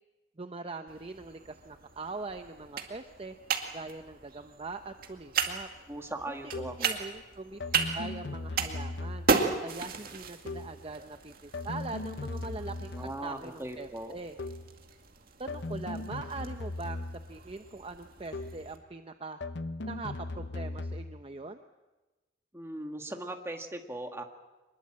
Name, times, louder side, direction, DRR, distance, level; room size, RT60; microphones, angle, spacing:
voice 1, 0.4-3.3 3.7-5.7 6.4-9.3 9.6-12.9 13.2-14.4 15.4-19.4 19.9-21.6, right 3 dB, 30° right, 8 dB, 0.8 m, -42 dB
sound 1, 0.9-18.8, right 5 dB, 50° right, 2.2 m, -36 dB
sound 2, 5.4-5.6 6.5-6.9 7.6-9.5 10.5-10.9 11.5-13.3 14.4-14.8 15.5-17.4 18.3-18.7 19.4-21.2, left 2 dB, 60° left, 0.8 m, -38 dB
voice 2, 5.9-6.9 12.9-14.2 22.5-24.2, right 1 dB, 15° right, 4 dB, 1.9 m, -39 dB
25.0 x 21.5 x 7.5 m, 1.1 s
head